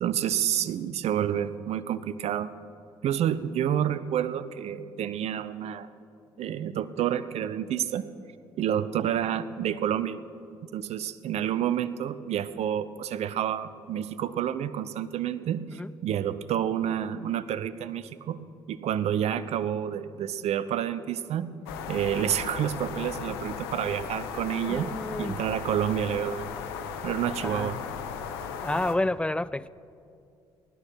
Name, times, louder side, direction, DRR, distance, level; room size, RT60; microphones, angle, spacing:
voice 1, 0.0-2.5 3.0-5.9 6.4-8.1 8.6-10.2 10.7-18.4 18.7-21.5 21.9-24.9 25.2-26.5 27.0-27.8, right 10 dB, 55° right, 0.7 m, -29 dB
sound 1, 21.7-29.0, left 7 dB, 80° left, 1.0 m, -36 dB
voice 2, 24.7-25.4 27.4-27.8 28.6-29.7, left 2 dB, 10° left, 0.4 m, -30 dB
17.0 x 12.0 x 5.7 m
hypercardioid pair, 50°, 13 cm